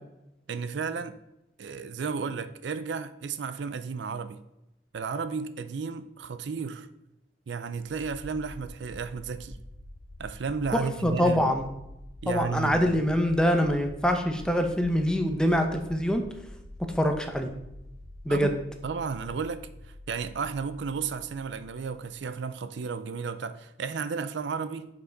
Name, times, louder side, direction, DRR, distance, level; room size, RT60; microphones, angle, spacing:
voice 1, 0.5-1.2 1.6-4.4 4.9-6.9 7.5-9.6 10.2-11.5 12.2-13.0 18.3-24.9, right 5 dB, 80° right, 0.4 m, -33 dB
sound 1, 7.7-22.5, left 1 dB, 85° left, 1.0 m, -47 dB
voice 2, 11.0-11.7 12.3-16.2 17.0-17.5 18.2-18.5, equal, 5° left, 0.7 m, -24 dB
6.9 x 5.4 x 3.9 m
head